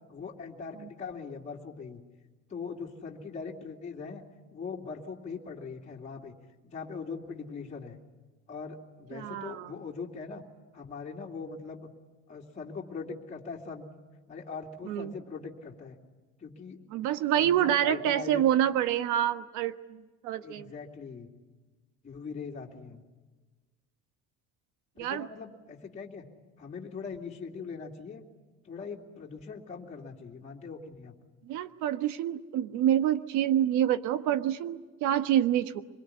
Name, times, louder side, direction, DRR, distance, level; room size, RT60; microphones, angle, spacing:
voice 1, 0.1-2.0 2.5-4.2 4.5-6.3 6.6-8.0 8.5-10.4 10.7-11.9 12.3-13.9 14.3-16.0 16.4-16.8 17.4-18.4 20.4-21.3 22.0-23.0 25.0-26.2 26.6-28.2 28.6-31.1, left 5 dB, 25° left, -2 dB, 2.6 m, -41 dB
voice 2, 9.1-9.7 14.9-15.1 16.9-20.7 25.0-25.3 31.5-35.8, right 11 dB, 75° right, 11 dB, 1.4 m, -27 dB
25.0 x 22.5 x 9.8 m, 1.3 s
cardioid pair, 160°, 30 cm